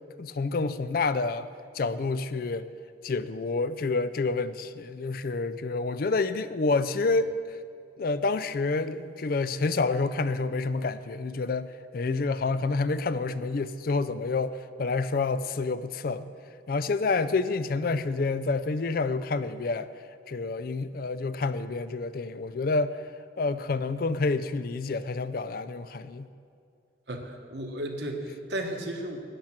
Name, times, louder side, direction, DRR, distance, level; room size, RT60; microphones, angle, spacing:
voice 1, 0.2-1.5 1.7-2.7 3.0-7.3 8.0-16.2 16.7-19.9 20.3-23.0 23.4-26.3, left 3 dB, 50° left, 14 dB, 0.4 m, -28 dB
voice 2, 27.1-29.2, right 1 dB, 65° right, 3 dB, 1.3 m, -34 dB
12.0 x 8.6 x 5.9 m, 2.4 s
head